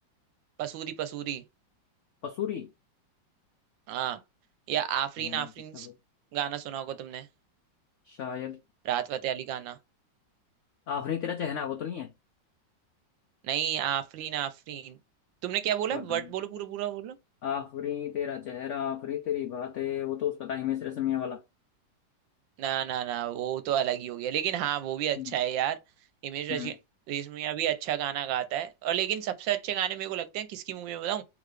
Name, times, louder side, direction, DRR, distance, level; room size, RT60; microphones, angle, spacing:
voice 1, 0.6-1.4 3.9-4.2 4.7-5.9 6.3-7.3 8.8-9.8 13.4-15.0 15.4-17.2 22.6-25.8 26.2-26.7 27.1-31.2, right 11 dB, 85° right, 1.4 m, -31 dB
voice 2, 2.2-2.7 5.2-5.9 8.1-8.6 10.9-12.1 15.9-16.3 17.4-21.4 25.2-25.3 26.5-26.7, left 10 dB, 90° left, 0.6 m, -33 dB
3.9 x 3.1 x 3.2 m
omnidirectional pair, 2.0 m